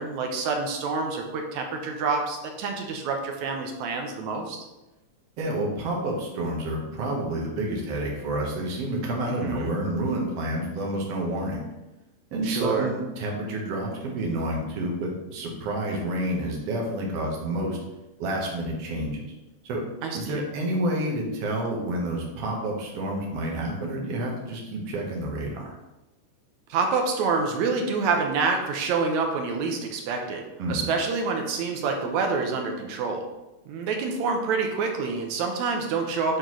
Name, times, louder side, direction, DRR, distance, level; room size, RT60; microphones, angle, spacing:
voice 1, 0.0-4.6 9.4-9.7 12.4-12.9 20.0-20.4 26.7-30.4 30.7-33.3 33.7-36.4, right 4 dB, 80° right, 3 dB, 2.1 m, -27 dB
voice 2, 5.4-11.6 12.3-17.8 18.2-19.2 19.6-19.8 20.1-25.7 30.6-30.8, right 1 dB, 65° right, -1 dB, 2.0 m, -29 dB
8.9 x 3.8 x 3.1 m, 1.0 s
omnidirectional pair, 3.3 m